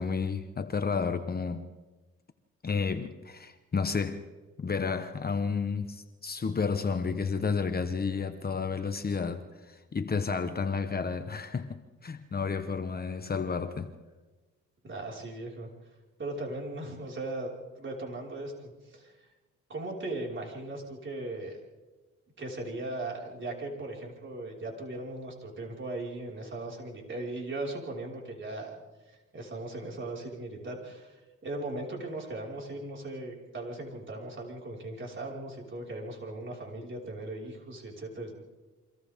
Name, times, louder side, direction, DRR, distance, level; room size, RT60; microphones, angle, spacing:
voice 1, 0.0-1.6 2.6-4.2 4.6-13.9, left 5 dB, 30° left, 1.2 m, -31 dB
voice 2, 14.8-15.7 16.2-17.5 17.8-19.3 19.7-21.6 22.4-28.8 29.1-38.3, right 2 dB, 40° right, 5.4 m, -38 dB
29.0 x 25.0 x 3.7 m
cardioid pair, 90°, 30 cm